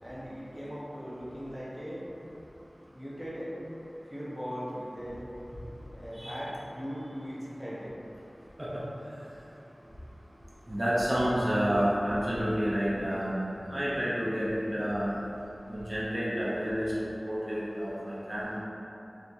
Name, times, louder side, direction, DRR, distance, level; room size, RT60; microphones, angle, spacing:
voice 1, 0.0-2.0 2.8-3.6 4.0-5.3 5.9-7.9, equal, ahead, -8 dB, 0.9 m, -39 dB
voice 2, 10.7-13.3 13.7-15.1 15.7-16.9 17.2-18.6, equal, 30° right, -9 dB, 0.8 m, -29 dB
4.1 x 3.0 x 3.5 m, 2.8 s
wide cardioid pair, 50°, 0 cm